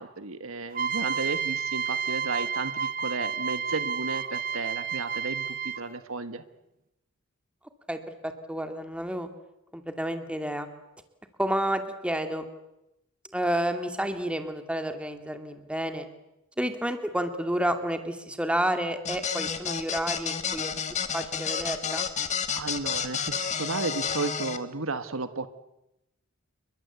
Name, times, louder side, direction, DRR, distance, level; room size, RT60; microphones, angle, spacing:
voice 1, 0.0-6.4 22.5-25.5, right 3 dB, 70° right, 11 dB, 1.5 m, -33 dB
sound 1, 0.7-6.0, right 6 dB, 40° right, 1.0 m, -31 dB
voice 2, 7.9-9.3 9.7-10.7 11.4-12.5 13.3-16.1 16.6-20.7 21.1-22.1, right 1 dB, 5° right, 7 dB, 2.3 m, -30 dB
sound 2, 19.0-24.6, left 7 dB, 35° left, 1.7 m, -31 dB
29.0 x 23.0 x 8.2 m, 0.89 s
head